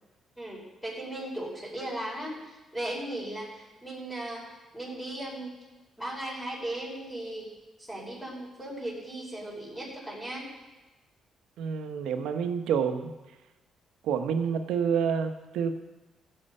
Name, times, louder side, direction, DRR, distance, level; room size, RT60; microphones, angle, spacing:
voice 1, 0.4-5.5 6.0-7.5 7.8-10.5, right 1 dB, 5° left, -5 dB, 5.2 m, -37 dB
voice 2, 11.6-13.1 14.0-15.8, right 7 dB, 85° right, 7 dB, 1.0 m, -28 dB
15.5 x 7.7 x 5.5 m, 1.1 s
cardioid pair, 90°, 0 cm